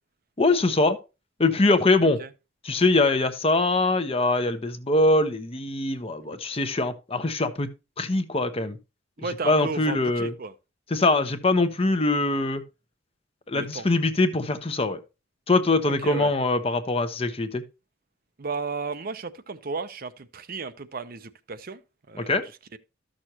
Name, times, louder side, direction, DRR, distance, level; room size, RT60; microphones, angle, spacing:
voice 1, 0.4-1.0 1.4-2.2 2.6-7.7 8.0-8.8 9.4-10.3 10.9-12.6 13.5-15.0 15.5-17.6 22.2-22.4, left 2 dB, 30° left, 0.9 m, -23 dB
voice 2, 9.2-10.5 13.5-13.9 15.8-16.3 18.4-21.8 22.1-22.3 22.7-22.8, right 4 dB, 50° right, 0.7 m, -34 dB
13.0 x 6.4 x 2.9 m
head